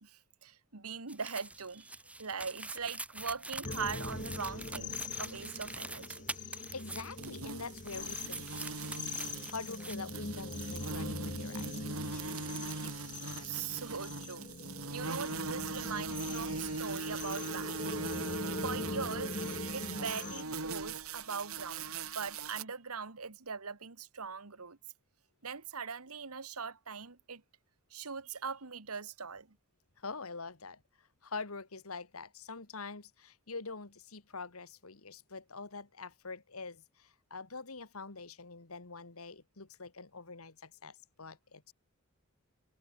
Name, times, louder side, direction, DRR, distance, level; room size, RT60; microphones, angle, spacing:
voice 1, 0.0-1.9 2.2-6.3 13.4-18.0 18.6-19.3 19.7-24.8 25.4-27.4 27.9-29.6, right 5 dB, 90° right, 1.8 m, -41 dB
sound 1, 1.1-7.5 7.7-10.0 10.4-10.5, right 2 dB, 5° right, 3.8 m, -45 dB
sound 2, 3.6-20.4, left 3 dB, 35° left, 1.4 m, -42 dB
voice 2, 6.4-9.1 9.5-12.2 30.0-41.7, left 4 dB, 75° left, 2.1 m, -45 dB
sound 3, 7.2-22.6, right 4 dB, 70° right, 3.7 m, -40 dB
head